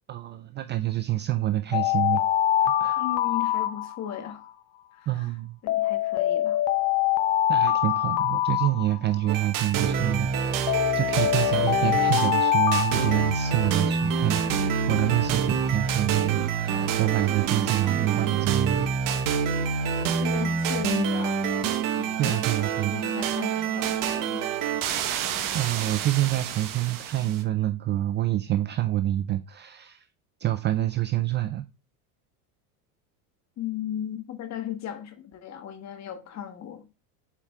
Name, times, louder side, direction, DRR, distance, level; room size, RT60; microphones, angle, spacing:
voice 1, 0.1-2.2 2.6-3.0 5.1-5.6 7.5-18.9 22.2-23.0 25.5-30.1 30.4-31.7, right 14 dB, 25° right, 0.4 m, -27 dB
Alarm, 1.7-4.3 5.7-9.3 10.7-13.9, left 12 dB, 55° left, 1.0 m, -24 dB
voice 2, 3.0-4.5 4.9-5.3 5.6-6.6 20.1-21.5 22.0-24.5 33.6-36.9, left 10 dB, 35° left, 1.4 m, -36 dB
sound 1, 9.3-27.4, right 6 dB, 45° right, 1.3 m, -27 dB
7.4 x 4.9 x 3.5 m
supercardioid pair, 120°, 45 cm